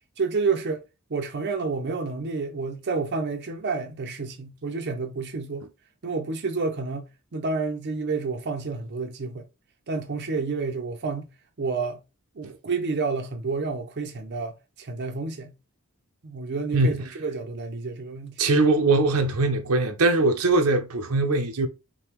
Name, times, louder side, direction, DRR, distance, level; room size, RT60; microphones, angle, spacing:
voice 1, 0.2-0.8 1.1-5.6 6.0-7.1 7.3-9.4 9.9-11.2 11.6-12.0 12.4-15.5 16.2-18.4, right 4 dB, 50° right, 0.6 m, -29 dB
voice 2, 16.7-17.0 18.4-21.7, right 2 dB, 80° right, 0.8 m, -21 dB
5.6 x 2.2 x 3.5 m
head